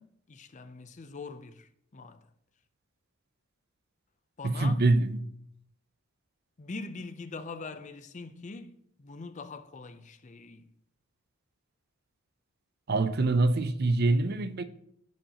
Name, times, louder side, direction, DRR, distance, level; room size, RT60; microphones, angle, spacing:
voice 1, 0.0-2.3 4.4-4.8 6.6-10.7, left 3 dB, 35° left, 0.5 m, -43 dB
voice 2, 4.4-5.2 12.9-14.6, right 2 dB, 50° right, 0.5 m, -25 dB
14.5 x 5.2 x 2.9 m
head